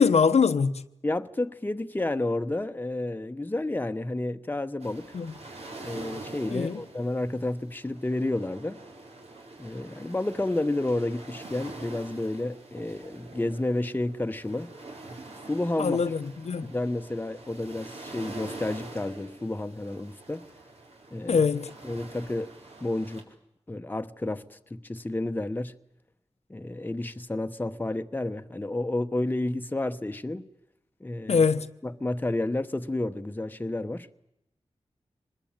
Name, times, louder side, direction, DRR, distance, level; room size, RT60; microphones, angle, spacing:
voice 1, 0.0-0.8 5.1-5.3 6.5-6.8 15.8-16.7 21.3-21.7 31.3-31.7, left 5 dB, 80° left, 1.0 m, -23 dB
voice 2, 1.0-5.1 5.8-8.8 9.6-14.7 15.5-16.1 16.7-20.5 21.1-21.5 21.8-22.5 22.8-23.3 23.7-25.7 26.5-30.5 31.0-31.5 31.8-34.1, left 2 dB, 15° left, 1.0 m, -31 dB
sound 1, 4.8-23.2, right 2 dB, 70° right, 4.5 m, -45 dB
25.5 x 20.5 x 8.9 m
wide cardioid pair, 80°, 11 cm